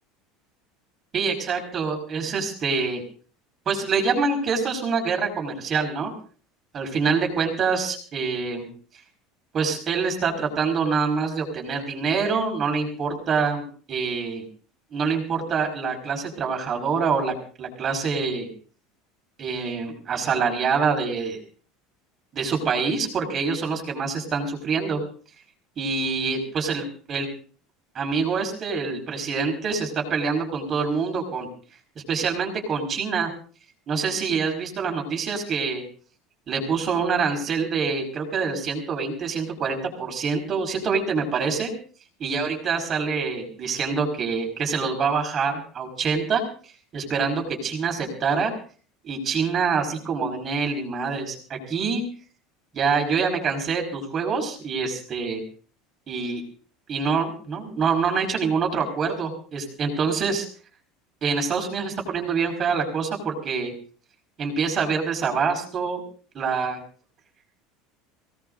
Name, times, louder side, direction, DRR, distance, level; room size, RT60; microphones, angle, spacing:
voice 1, 1.1-3.0 3.7-6.1 6.7-8.7 9.5-13.6 13.9-14.5 14.9-18.5 19.4-21.4 22.3-25.0 25.8-27.3 28.0-31.5 32.1-33.3 33.9-35.8 36.5-41.7 42.2-46.4 46.9-48.5 49.0-52.0 52.7-55.4 56.1-56.4 56.9-60.5 61.2-63.7 64.4-66.0 66.3-66.8, right 5 dB, 30° right, 2 dB, 5.3 m, -25 dB
24.0 x 18.5 x 2.6 m, 0.42 s
cardioid pair, 150°, 0 cm